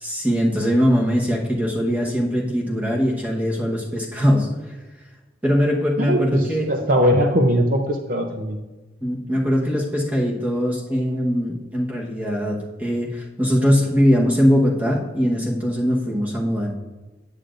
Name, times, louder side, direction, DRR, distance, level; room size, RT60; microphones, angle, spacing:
voice 1, 0.0-4.5 5.4-6.7 9.0-16.7, equal, 10° right, -3 dB, 1.1 m, -21 dB
voice 2, 6.0-8.6, equal, 50° right, 3 dB, 0.6 m, -20 dB
8.3 x 8.1 x 2.5 m, 1.2 s
head